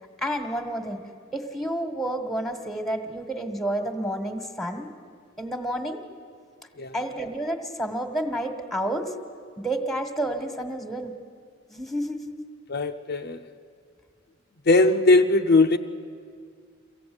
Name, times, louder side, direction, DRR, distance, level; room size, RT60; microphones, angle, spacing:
voice 1, 0.2-1.0 1.3-4.9 5.4-6.0 6.9-9.1 9.6-11.1 11.7-12.4, right 1 dB, ahead, 6 dB, 1.6 m, -30 dB
voice 2, 12.7-13.5 14.7-15.8, left 2 dB, 55° left, 5 dB, 0.7 m, -19 dB
23.5 x 16.0 x 9.5 m, 2.1 s
head